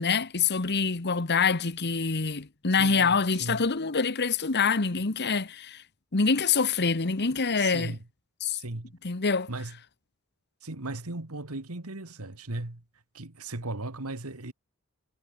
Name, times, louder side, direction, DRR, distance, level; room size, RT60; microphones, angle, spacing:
voice 1, 0.0-5.8 6.1-7.9 8.4-8.6 9.0-9.5, left 5 dB, 50° left, 1.3 m, -25 dB
voice 2, 2.8-3.6 7.6-8.0 8.5-9.0 9.5-9.8 10.6-12.8 13.1-14.5, right 2 dB, 80° right, 2.1 m, -37 dB
head